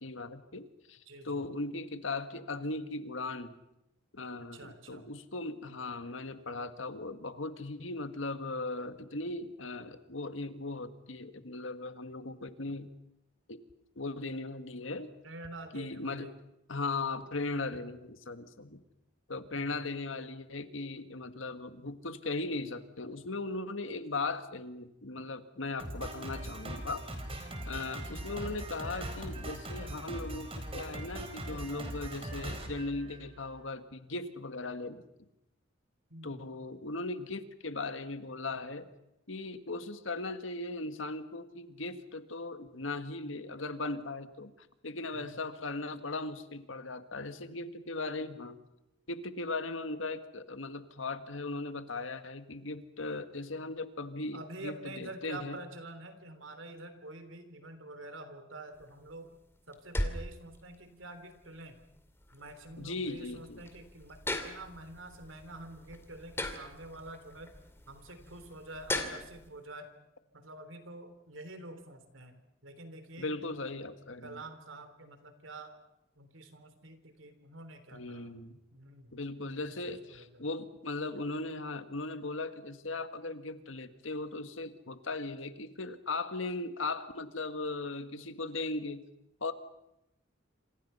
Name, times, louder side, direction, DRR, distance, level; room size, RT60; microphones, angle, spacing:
voice 1, 0.0-3.5 4.1-12.9 13.5-13.6 14.0-15.1 15.7-16.3 16.7-18.8 19.3-27.0 27.4-35.0 36.2-38.9 39.3-48.6 49.1-55.6 62.8-63.6 73.2-74.4 77.9-78.6 79.1-89.0 89.4-89.5, left 3 dB, 80° left, 9 dB, 1.8 m, -38 dB
voice 2, 1.1-1.5 4.5-5.1 15.2-16.3 19.5-19.8 36.1-36.4 45.1-45.4 54.3-59.4 59.7-61.8 62.3-69.9 70.3-73.7 74.2-75.8 76.2-78.3 78.7-79.2 79.8-80.4, right 2 dB, 75° right, 10 dB, 3.4 m, -47 dB
Drum kit, 25.8-33.6, right 1 dB, 30° right, 4.2 m, -41 dB
sound 1, 58.7-69.5, left 1 dB, 15° left, 2.4 m, -40 dB
27.0 x 27.0 x 5.7 m, 0.84 s
head